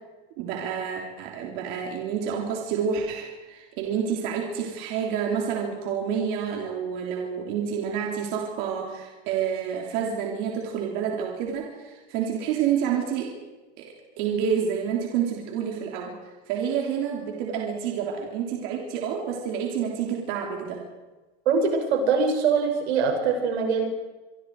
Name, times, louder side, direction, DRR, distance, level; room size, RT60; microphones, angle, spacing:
voice 1, 0.4-13.3 13.8-16.1 16.5-20.8, right 7 dB, 40° right, 0 dB, 3.4 m, -29 dB
voice 2, 21.5-23.9, right 5 dB, 80° right, 3 dB, 6.5 m, -23 dB
25.5 x 25.0 x 4.8 m, 1.2 s
supercardioid pair, 180°, 32 cm